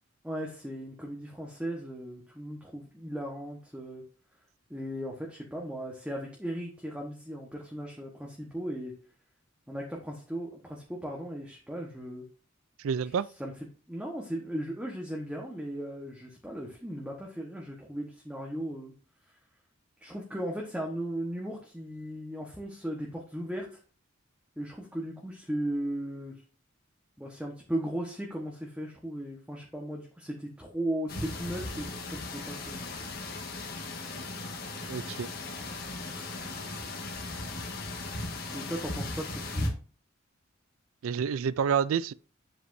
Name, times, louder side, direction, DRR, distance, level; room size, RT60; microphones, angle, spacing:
voice 1, 0.2-4.0 4.7-8.9 9.7-12.3 13.0-13.5 13.9-18.9 20.0-23.8 24.6-26.4 27.2-33.1 38.5-39.7, right 1 dB, 5° right, 1.2 m, -37 dB
voice 2, 12.8-13.3 34.9-35.3 41.0-42.1, right 7 dB, 80° right, 0.4 m, -28 dB
sound 1, 31.1-39.7, left 2 dB, 50° left, 1.6 m, -37 dB
7.9 x 7.7 x 2.7 m
head